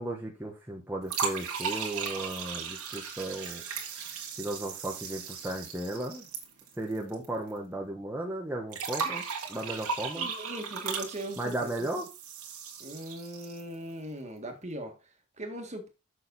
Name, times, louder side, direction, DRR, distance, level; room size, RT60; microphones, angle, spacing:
voice 1, 0.0-3.6 4.4-6.2 6.8-9.2 9.5-10.3 11.4-12.1, right 1 dB, 10° right, 1.1 m, -35 dB
sound 1, 1.1-7.2 7.5-7.6 8.7-13.7, right 6 dB, 90° right, 2.1 m, -37 dB
voice 2, 10.1-11.7 12.8-15.9, right 1 dB, 30° right, 1.7 m, -39 dB
7.1 x 6.4 x 4.0 m
head